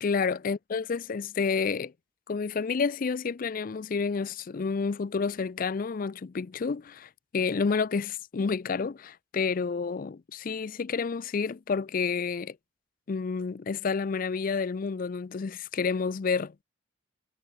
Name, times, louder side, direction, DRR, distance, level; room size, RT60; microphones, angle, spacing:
voice 1, 0.0-1.9 2.3-12.6 13.1-16.6, left 5 dB, 45° left, 0.4 m, -30 dB
head